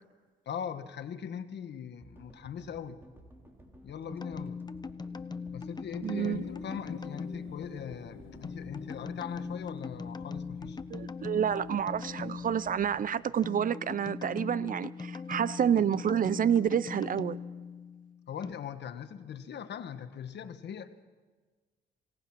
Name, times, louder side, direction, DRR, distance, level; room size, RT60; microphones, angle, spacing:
voice 1, 0.4-3.0 3.8-4.6 5.5-10.8 18.3-21.0, left 8 dB, 60° left, 1.4 m, -40 dB
sound 1, 2.0-14.3, right 1 dB, 10° right, 3.7 m, -56 dB
sound 2, 4.1-18.5, left 5 dB, 20° left, 0.8 m, -41 dB
voice 2, 6.0-6.4 10.9-17.4, right 8 dB, 45° right, 0.5 m, -29 dB
sound 3, 6.2-11.5 11.8-11.9, left 8 dB, 80° left, 2.0 m, -50 dB
27.0 x 18.0 x 6.0 m
cardioid pair, 90°, 20 cm